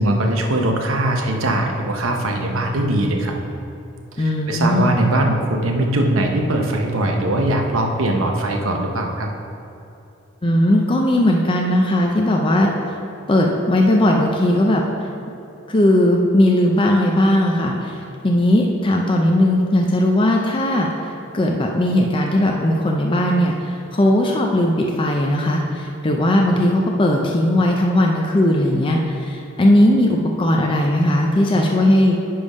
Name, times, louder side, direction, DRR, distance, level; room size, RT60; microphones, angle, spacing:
voice 1, 0.0-3.4 4.2-9.3, right 1 dB, 80° right, 2 dB, 0.9 m, -21 dB
voice 2, 4.2-5.0 10.4-12.7 13.3-14.8 15.7-20.9 21.3-32.2, left 1 dB, 25° left, 0 dB, 0.5 m, -18 dB
10.0 x 3.4 x 5.3 m, 2.8 s
head